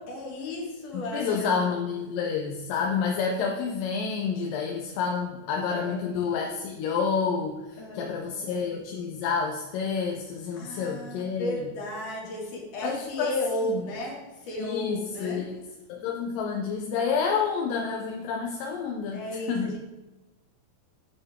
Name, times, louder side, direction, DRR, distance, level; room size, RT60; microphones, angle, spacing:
voice 1, 0.0-1.7 5.7-6.4 7.8-8.7 10.5-15.5 19.1-19.8, left 1 dB, 70° left, -2 dB, 3.7 m, -34 dB
voice 2, 0.9-11.6 12.8-13.3 13.6-13.8 14.6-15.6 15.9-19.2 19.5-19.8, left 5 dB, 85° left, 1 dB, 2.5 m, -29 dB
9.5 x 8.9 x 3.7 m, 1.1 s
omnidirectional pair, 3.8 m